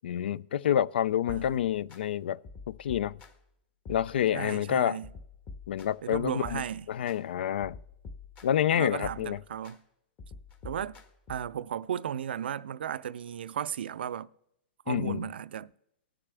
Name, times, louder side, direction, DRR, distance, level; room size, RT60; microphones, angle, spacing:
voice 1, 0.0-2.4 2.7-3.2 3.9-5.0 5.7-7.8 8.4-9.4 14.9-15.3, left 10 dB, 80° left, 0.3 m, -28 dB
sound 1, 1.3-2.0 2.4-3.5 3.9-4.6 5.0-7.2 7.6-8.7 9.0-9.8 10.2-11.6, left 4 dB, 30° left, 1.4 m, -47 dB
voice 2, 1.3-1.6 4.3-5.1 6.0-6.9 8.7-9.8 10.6-11.0 11.3-14.3 14.9-15.7, right 9 dB, 85° right, 0.4 m, -35 dB
19.5 x 6.7 x 3.4 m
hypercardioid pair, 145°, 5 cm